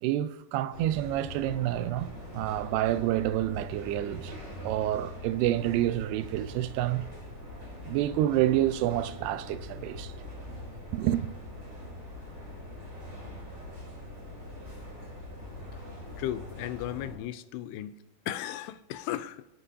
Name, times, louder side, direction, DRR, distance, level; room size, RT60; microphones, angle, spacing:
voice 1, 0.0-4.3 4.6-7.0 7.9-10.1 10.9-11.3, right 13 dB, 85° right, 2.6 m, -28 dB
sound 1, 0.7-17.2, left 1 dB, 20° right, 3.3 m, -43 dB
voice 2, 16.2-17.9 18.3-19.5, left 12 dB, 85° left, 2.7 m, -35 dB
27.0 x 9.5 x 2.8 m
omnidirectional pair, 4.6 m